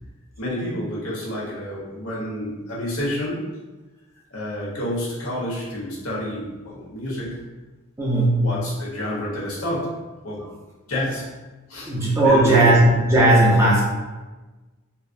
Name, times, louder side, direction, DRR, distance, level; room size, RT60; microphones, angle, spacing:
voice 1, 0.4-3.4 4.3-7.3 8.3-9.9 10.2-10.4 10.9-11.2 11.7-11.9 12.2-12.7, left 1 dB, 90° left, -6 dB, 1.2 m, -29 dB
voice 2, 8.0-8.5 11.9-13.8, right 1 dB, 15° right, -5 dB, 0.6 m, -16 dB
3.9 x 2.1 x 2.6 m, 1.2 s
head